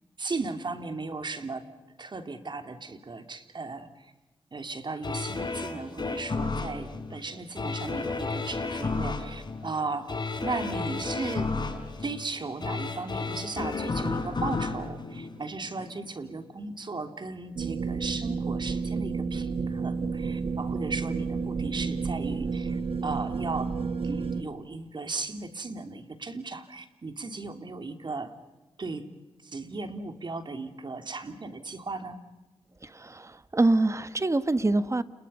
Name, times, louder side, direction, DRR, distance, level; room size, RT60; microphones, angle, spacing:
voice 1, 0.2-1.6 2.0-4.1 4.5-10.1 10.4-11.5 12.0-23.7 24.0-28.3 28.8-29.0 29.4-32.2, right 3 dB, 50° right, 7 dB, 3.0 m, -36 dB
sound 1, 5.0-16.0 16.4-16.5, left 3 dB, 45° left, 5.2 m, -32 dB
sound 2, 17.5-24.4, right 5 dB, 70° right, 1.5 m, -31 dB
voice 2, 32.8-35.0, right 2 dB, 30° right, 13 dB, 1.4 m, -25 dB
30.0 x 28.5 x 5.6 m, 1.1 s
cardioid pair, 55°, 10 cm